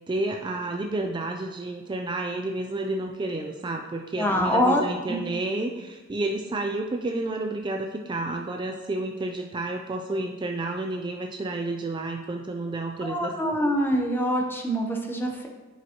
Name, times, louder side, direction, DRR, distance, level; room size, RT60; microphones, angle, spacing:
voice 1, 0.1-13.3, right 2 dB, 25° right, 3 dB, 0.4 m, -30 dB
voice 2, 4.2-4.8 5.1-5.2 13.0-15.5, equal, 10° left, 1 dB, 0.8 m, -24 dB
9.8 x 5.1 x 2.9 m, 1.2 s
head